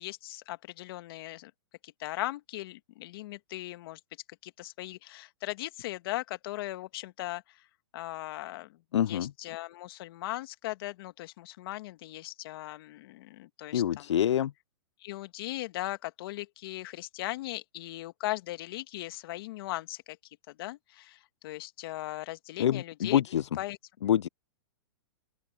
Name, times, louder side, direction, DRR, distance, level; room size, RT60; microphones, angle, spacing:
voice 1, 0.0-1.5 1.8-4.0 4.4-7.6 7.9-8.8 9.1-14.2 15.0-20.2 20.5-23.2 23.6-23.8, left 17 dB, 55° left, 1.8 m, -38 dB
voice 2, 8.9-9.3 13.7-14.5 22.6-23.5 24.0-24.3, left 10 dB, 85° left, 0.4 m, -26 dB
open air
hypercardioid pair, 130°, 14 cm